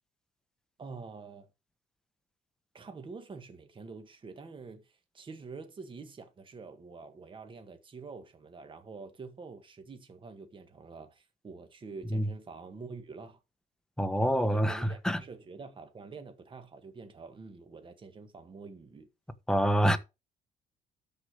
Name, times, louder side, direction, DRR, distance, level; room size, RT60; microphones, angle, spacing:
voice 1, 0.8-1.5 2.7-13.4 14.2-19.1, right 4 dB, 30° right, 1.7 m, -46 dB
voice 2, 14.0-15.2 19.5-20.0, equal, 5° left, 1.2 m, -26 dB
13.0 x 5.0 x 4.9 m
cardioid pair, 110°, 17 cm